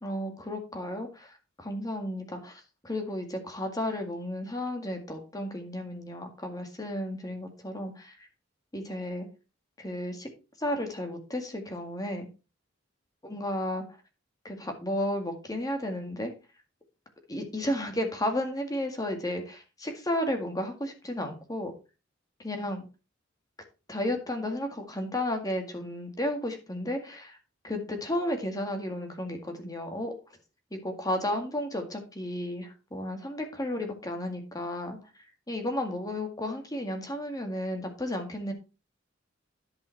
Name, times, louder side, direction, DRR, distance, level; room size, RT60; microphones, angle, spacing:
voice 1, 0.0-8.3 8.7-9.3 9.8-10.3 10.6-12.3 13.3-13.8 14.4-16.3 17.3-21.7 22.4-22.8 23.9-27.4 27.6-30.1 30.7-38.5, left 1 dB, 20° left, 4 dB, 1.9 m, -33 dB
11.0 x 5.5 x 4.5 m, 0.30 s
head